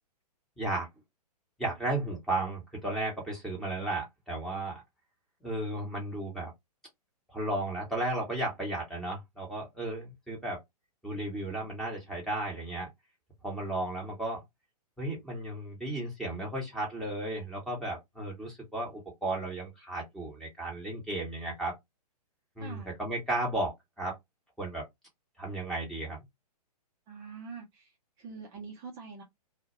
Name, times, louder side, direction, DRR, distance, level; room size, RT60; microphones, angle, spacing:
voice 1, 0.6-0.9 1.6-4.8 5.4-6.5 7.3-10.6 11.0-12.9 13.4-14.4 15.0-21.7 22.6-24.2 24.6-24.8 25.4-26.2, right 2 dB, ahead, 0.8 m, -34 dB
voice 2, 27.1-27.9 28.2-29.2, right 5 dB, 15° right, 0.4 m, -44 dB
2.1 x 2.1 x 2.8 m
figure-of-eight pair, 115°, 21 cm